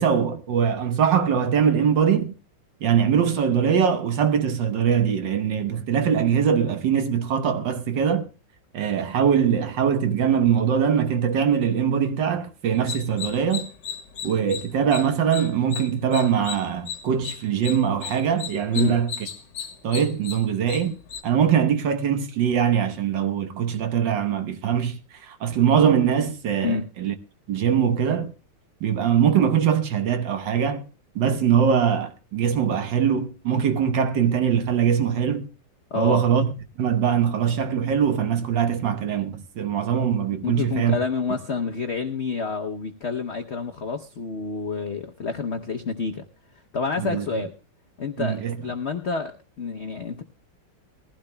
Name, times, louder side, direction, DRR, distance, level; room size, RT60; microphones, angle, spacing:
voice 1, 0.0-2.3 2.8-8.3 8.7-13.7 14.2-19.1 19.8-21.0 21.2-27.1 27.5-28.3 28.8-30.8 31.1-35.5 35.9-36.5 36.8-41.0 47.0-47.2 48.2-48.6, right 8 dB, 65° right, 1.7 m, -22 dB
sound 1, 12.7-21.2, left 8 dB, 60° left, 1.9 m, -36 dB
voice 2, 35.9-36.3 40.4-46.3 46.7-47.5 48.0-50.2, left 4 dB, 75° left, 0.6 m, -28 dB
20.5 x 15.5 x 2.2 m
omnidirectional pair, 2.2 m